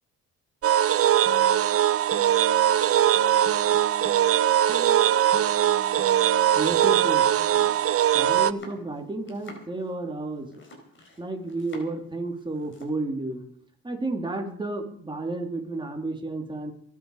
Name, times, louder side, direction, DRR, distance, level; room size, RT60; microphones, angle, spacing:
sound 1, 0.6-8.5, right 11 dB, 50° right, 0.6 m, -21 dB
sound 2, 1.2-7.7, left 2 dB, 5° left, 3.6 m, -45 dB
voice 1, 6.5-7.3 8.1-10.5 11.2-13.4 13.8-16.7, right 2 dB, 15° right, 2 dB, 3.2 m, -31 dB
Domestic sounds home sounds, 7.3-12.1 12.4-13.0, left 1 dB, 40° left, 4.5 m, -48 dB
25.0 x 8.5 x 5.0 m, 0.63 s
cardioid pair, 90°, 30 cm